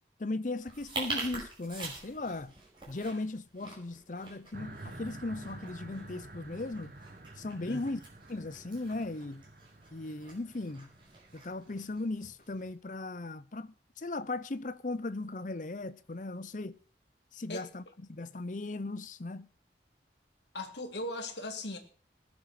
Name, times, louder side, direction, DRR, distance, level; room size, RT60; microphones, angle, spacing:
voice 1, 0.2-2.5 2.9-6.9 7.4-8.0 8.3-9.4 9.9-10.9 11.3-16.8 17.3-19.5, left 2 dB, 45° left, 0.7 m, -37 dB
sound 1, 0.6-12.7, right 3 dB, 30° right, 5.5 m, -45 dB
sound 2, 4.5-12.0, right 2 dB, 50° right, 1.6 m, -49 dB
voice 2, 20.5-21.8, left 1 dB, 80° left, 2.2 m, -38 dB
19.0 x 7.6 x 6.0 m
head